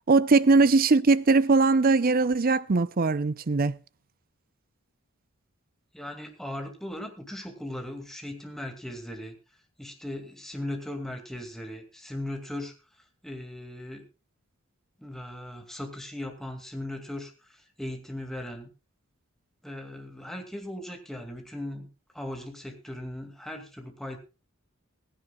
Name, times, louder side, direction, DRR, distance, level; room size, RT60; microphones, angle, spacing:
voice 1, 0.1-3.8, right 3 dB, 45° right, 0.6 m, -21 dB
voice 2, 5.9-9.4 9.8-12.7 13.2-14.1 15.0-18.7 19.6-24.2, left 1 dB, ahead, 2.3 m, -38 dB
17.0 x 16.0 x 2.4 m
head